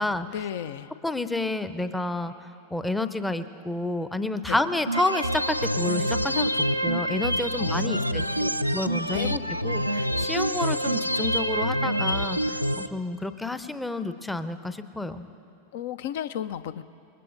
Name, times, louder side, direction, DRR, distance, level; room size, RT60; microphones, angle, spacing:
voice 1, 0.0-0.9 4.4-4.6 7.6-8.8 9.1-9.3 15.7-16.8, left 9 dB, 55° left, 14 dB, 0.5 m, -34 dB
voice 2, 1.0-2.3 2.7-15.3, left 2 dB, 5° left, 11 dB, 0.7 m, -30 dB
sound 1, 4.9-12.9, equal, 90° right, 0.4 m, -26 dB
26.5 x 21.0 x 2.6 m, 2.8 s
figure-of-eight pair, 90°, 0 cm